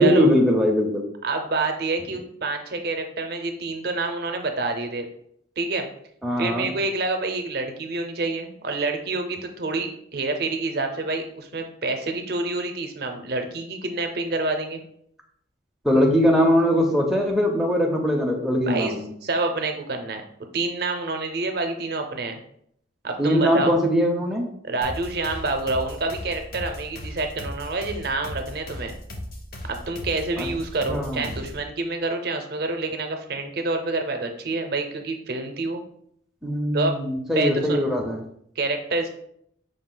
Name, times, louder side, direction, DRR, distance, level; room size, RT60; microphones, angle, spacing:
voice 1, 0.0-1.0 6.2-6.7 15.8-19.1 23.2-24.5 30.4-30.5 30.9-31.2 36.4-38.2, equal, ahead, -1 dB, 0.4 m, -21 dB
voice 2, 1.2-5.1 5.6-5.9 6.4-14.8 18.6-18.9 19.2-20.2 20.5-22.4 23.0-23.8 24.6-28.9 29.7-35.8 36.7-37.0 37.4-37.8 38.6-39.1, right 3 dB, 55° right, 5 dB, 0.5 m, -27 dB
sound 1, 24.8-31.7, left 1 dB, 50° left, 0.6 m, -37 dB
5.0 x 2.3 x 3.8 m, 0.70 s
head